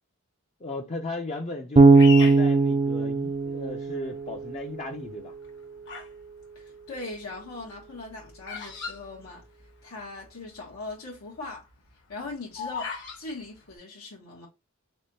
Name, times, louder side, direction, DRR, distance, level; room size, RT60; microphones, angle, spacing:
voice 1, 0.6-5.3, left 2 dB, 30° left, 0.5 m, -36 dB
Bass guitar, 1.8-4.8, right 3 dB, 30° right, 0.4 m, -19 dB
Bird vocalization bird call bird song, 1.9-3.5 4.1-4.5 5.3-6.2 6.5-10.0 10.2-10.3 10.5-10.9 11.3-13.2, left 6 dB, 60° left, 1.1 m, -37 dB
voice 2, 6.5-9.5 9.8-11.7 12.1-14.5, left 3 dB, 90° left, 1.3 m, -40 dB
3.4 x 3.4 x 2.7 m
head